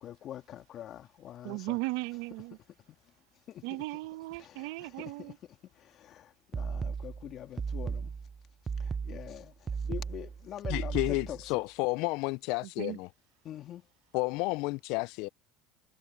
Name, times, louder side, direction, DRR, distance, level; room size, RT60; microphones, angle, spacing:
voice 1, 0.0-1.8 2.9-3.0 3.5-3.8 4.4-5.4 5.7-8.1 8.8-11.6 13.4-13.9, left 11 dB, 50° left, 2.7 m, -45 dB
voice 2, 1.4-2.6 3.6-5.4 12.6-13.0, right 22 dB, 75° right, 1.0 m, -37 dB
sound 1, 6.5-11.5, right 5 dB, 25° right, 0.7 m, -36 dB
voice 3, 10.7-13.1 14.1-15.3, left 25 dB, 70° left, 0.3 m, -31 dB
supercardioid pair, 95°, 0 cm